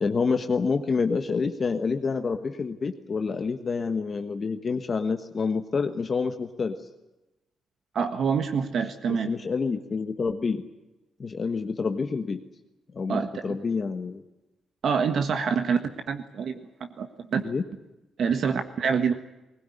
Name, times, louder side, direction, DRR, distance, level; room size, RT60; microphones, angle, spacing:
voice 1, 0.0-6.7 9.1-10.6 11.2-12.4 12.9-14.2 17.4-17.6, left 4 dB, 30° left, 7 dB, 1.3 m, -28 dB
voice 2, 7.9-9.3 13.1-13.5 14.8-15.8 16.1-16.6 17.0-17.4 18.2-19.1, right 6 dB, 50° right, 7 dB, 1.5 m, -26 dB
20.5 x 20.0 x 9.9 m, 0.97 s
cardioid pair, 155°, 0 cm